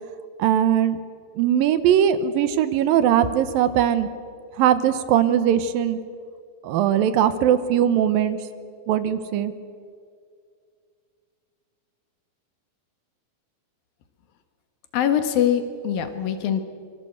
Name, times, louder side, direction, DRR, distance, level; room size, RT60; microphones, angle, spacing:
voice 1, 0.4-1.0 1.4-4.1 4.6-6.0 6.6-8.4 8.9-9.5, right 10 dB, 80° right, 12 dB, 2.8 m, -20 dB
voice 2, 14.9-16.6, left 9 dB, 80° left, 9 dB, 3.3 m, -23 dB
24.5 x 23.5 x 8.0 m, 2.2 s
omnidirectional pair, 4.1 m